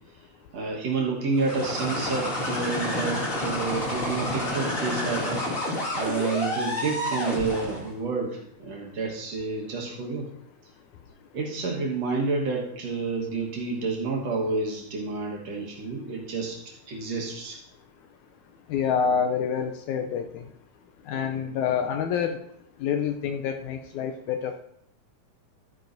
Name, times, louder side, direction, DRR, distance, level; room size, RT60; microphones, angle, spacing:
voice 1, 0.5-5.4 5.9-10.3 11.3-17.6, right 4 dB, 55° right, -1 dB, 2.3 m, -29 dB
sound 1, 1.3-7.9, left 1 dB, 30° left, 1.9 m, -29 dB
voice 2, 18.7-20.5 21.1-22.4 22.8-24.6, left 7 dB, 80° left, 6 dB, 1.8 m, -27 dB
12.0 x 9.4 x 2.6 m, 0.71 s
omnidirectional pair, 3.8 m